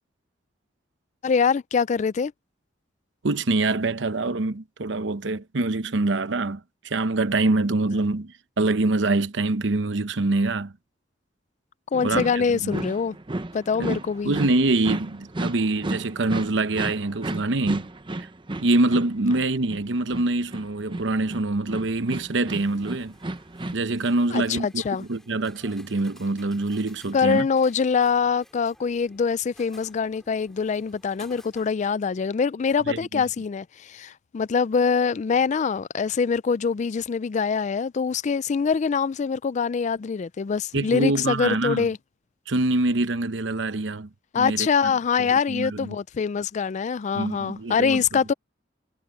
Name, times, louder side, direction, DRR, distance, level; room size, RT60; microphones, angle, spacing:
voice 1, 1.2-2.3 11.9-13.2 13.5-14.3 24.3-25.0 27.1-42.0 44.3-48.3, left 5 dB, 40° left, 0.3 m, -24 dB
voice 2, 3.2-10.7 12.0-12.8 13.8-17.9 18.2-18.3 18.6-23.2 23.7-27.5 32.8-33.2 40.7-41.9 42.5-44.1 44.4-44.9 45.2-46.0 47.1-48.0, right 2 dB, 70° right, 0.9 m, -25 dB
sound 1, 11.9-23.7, right 2 dB, 25° right, 0.8 m, -34 dB
sound 2, 22.6-31.7, equal, 5° left, 3.2 m, -55 dB
head